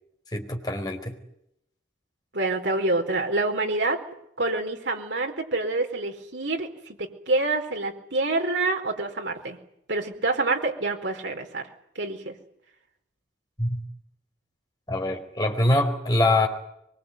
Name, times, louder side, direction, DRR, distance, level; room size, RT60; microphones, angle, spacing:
voice 1, 0.3-1.1 13.6-13.8 14.9-16.5, left 1 dB, 20° left, 2 dB, 4.5 m, -24 dB
voice 2, 2.3-4.0 4.4-9.6 9.9-11.7 11.9-12.3, right 2 dB, 70° right, 3 dB, 4.6 m, -27 dB
23.5 x 23.5 x 9.4 m, 0.78 s
head